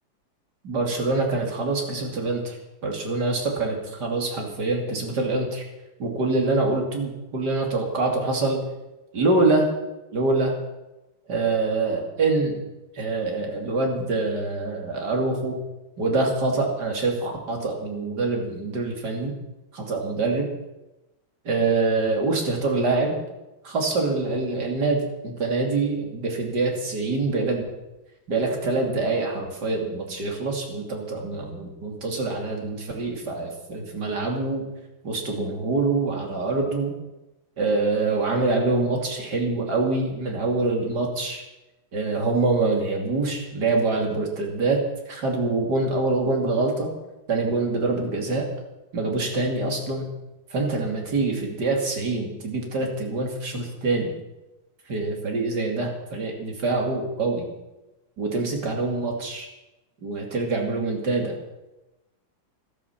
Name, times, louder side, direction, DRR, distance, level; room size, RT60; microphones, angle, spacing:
voice 1, 0.6-2.6 2.8-5.6 6.0-8.6 9.1-9.7 10.1-10.5 11.3-12.6 12.9-15.6 16.0-19.3 19.7-20.5 21.5-23.2 23.6-27.6 28.3-34.7 35.0-36.9 37.6-41.4 41.9-44.8 45.1-46.9 47.3-48.5 48.9-50.1 50.5-54.1 54.9-57.5 58.2-59.5 60.0-61.3, right 3 dB, 60° right, 1 dB, 3.3 m, -25 dB
13.0 x 12.5 x 7.4 m, 0.99 s
omnidirectional pair, 2.1 m